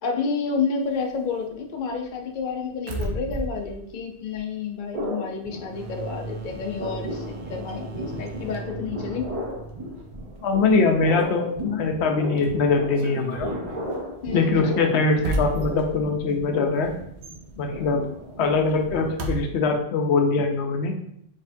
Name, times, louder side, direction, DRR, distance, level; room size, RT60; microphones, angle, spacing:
voice 1, 0.0-9.3 14.2-14.8, left 5 dB, 55° left, 3 dB, 0.7 m, -30 dB
sound 1, 0.8-5.2 5.5-19.4, right 1 dB, 90° right, 0.9 m, -36 dB
sound 2, 4.9-6.2 6.4-19.6, equal, 35° right, 0.8 m, -35 dB
sound 3, 5.7-11.1, right 3 dB, 65° right, 0.8 m, -39 dB
voice 2, 10.4-13.5 14.3-16.9 17.6-18.1 18.4-21.0, left 4 dB, 85° left, 3 dB, 0.9 m, -22 dB
4.3 x 3.5 x 2.6 m, 0.70 s
omnidirectional pair, 1.1 m